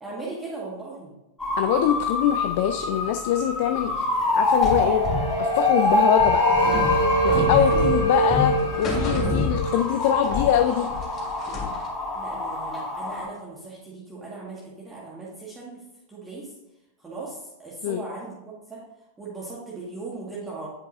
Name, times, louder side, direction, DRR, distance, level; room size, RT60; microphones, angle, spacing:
voice 1, 0.0-1.1 7.5-7.7 8.4-8.6 12.1-15.8 16.1-16.5 17.0-18.8 19.2-20.7, right 3 dB, 10° right, -6 dB, 1.8 m, -38 dB
sound 1, 1.4-13.3, left 2 dB, 10° left, 2.1 m, -26 dB
voice 2, 1.6-4.1 4.4-5.0 5.4-6.4 7.2-10.9 17.8-18.0, left 10 dB, 50° left, 7 dB, 0.4 m, -23 dB
sound 2, 4.4-11.4, right 2 dB, 85° left, 1.8 m, -26 dB
sound 3, 4.6-10.1 10.3-11.9, left 4 dB, 30° left, 2.7 m, -28 dB
9.9 x 5.3 x 2.7 m, 0.93 s
figure-of-eight pair, 90°, 0 cm